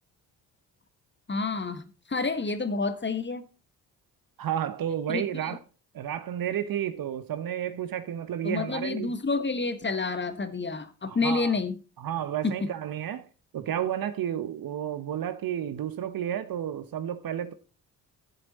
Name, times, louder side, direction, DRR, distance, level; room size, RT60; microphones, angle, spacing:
voice 1, 1.3-3.5 5.1-5.2 8.4-11.8 12.4-12.7, left 4 dB, 25° left, 1.3 m, -29 dB
voice 2, 4.4-5.6 5.9-9.1 11.1-11.6 12.0-13.3 13.5-17.5, right 10 dB, 45° right, 1.0 m, -31 dB
11.0 x 7.7 x 4.1 m
figure-of-eight pair, 45°, 47 cm